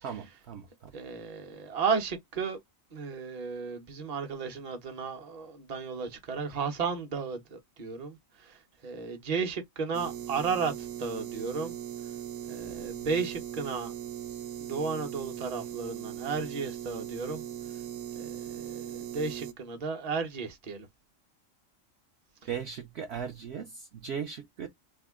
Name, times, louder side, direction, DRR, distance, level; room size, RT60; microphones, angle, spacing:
voice 1, 0.0-0.9 22.5-24.7, right 7 dB, 65° right, 0.8 m, -38 dB
voice 2, 0.9-2.6 2.9-11.7 12.5-13.9 14.6-17.4 18.1-20.9, right 5 dB, 35° right, 0.8 m, -34 dB
sound 1, 9.9-19.5, right 10 dB, 85° right, 1.0 m, -39 dB
3.6 x 2.1 x 3.5 m
omnidirectional pair, 1.4 m